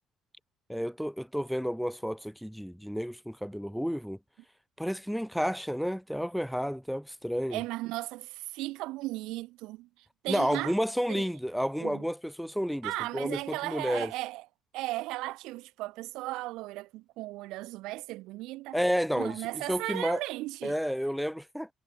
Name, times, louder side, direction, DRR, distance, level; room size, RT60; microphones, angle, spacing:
voice 1, 0.7-4.2 4.8-7.6 10.3-14.1 18.7-19.4 19.7-20.2 20.6-21.7, equal, ahead, 1.5 m, -31 dB
voice 2, 7.5-10.7 11.1-11.3 11.8-12.1 12.8-14.4 14.7-18.8 19.1-20.8, right 19 dB, 90° right, 6.2 m, -36 dB
cardioid pair, 170°, 0 cm